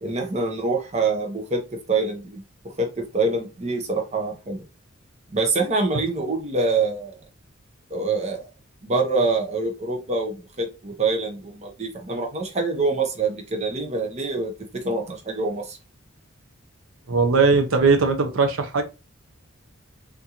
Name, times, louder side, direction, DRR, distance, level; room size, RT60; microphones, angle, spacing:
voice 1, 0.0-2.4 2.8-4.6 5.3-7.2 7.9-8.4 8.8-15.8, right 3 dB, 30° right, 0.7 m, -25 dB
voice 2, 17.1-18.8, right 4 dB, 75° right, 0.6 m, -19 dB
3.6 x 2.6 x 2.8 m
head